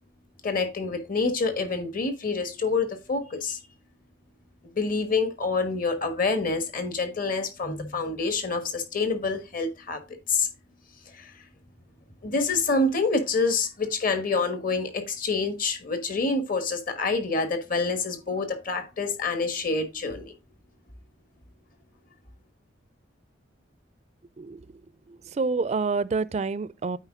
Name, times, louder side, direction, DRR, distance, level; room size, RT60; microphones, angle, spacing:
voice 1, 0.4-3.6 4.7-10.0 10.3-10.5 11.1-11.3 12.2-20.3, left 3 dB, 50° left, 1.3 m, -27 dB
voice 2, 25.4-27.0, right 4 dB, 35° right, 0.4 m, -27 dB
9.0 x 4.5 x 3.6 m
head